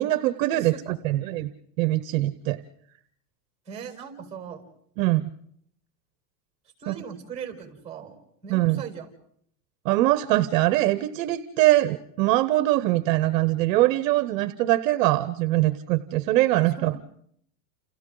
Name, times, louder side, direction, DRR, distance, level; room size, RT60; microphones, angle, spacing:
voice 1, 0.0-1.5 1.8-2.6 5.0-5.3 6.9-7.0 8.5-8.8 9.8-17.0, right 16 dB, 55° right, 13 dB, 0.9 m, -22 dB
voice 2, 0.5-1.4 3.7-4.6 6.8-8.2 8.4-9.1 16.8-16.9, right 7 dB, 15° right, 4 dB, 4.7 m, -39 dB
29.0 x 29.0 x 3.9 m, 0.68 s
supercardioid pair, 155°, 47 cm